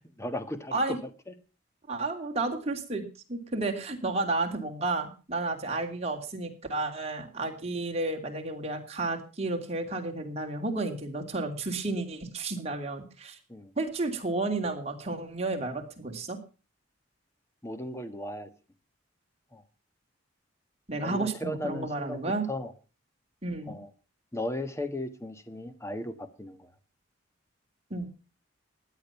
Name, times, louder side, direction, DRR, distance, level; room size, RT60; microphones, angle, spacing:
voice 1, 0.2-1.0 1.3-1.4 13.5-13.7 17.6-18.5 19.5-19.6 21.0-22.7 23.7-23.9 24.3-26.7, left 1 dB, 15° left, 10 dB, 1.4 m, -36 dB
voice 2, 1.9-3.0 3.3-13.4 13.8-16.4 20.9-22.5 23.4-23.7 27.9-28.1, right 2 dB, 30° right, 3 dB, 2.8 m, -32 dB
16.0 x 10.5 x 5.8 m, 0.35 s
head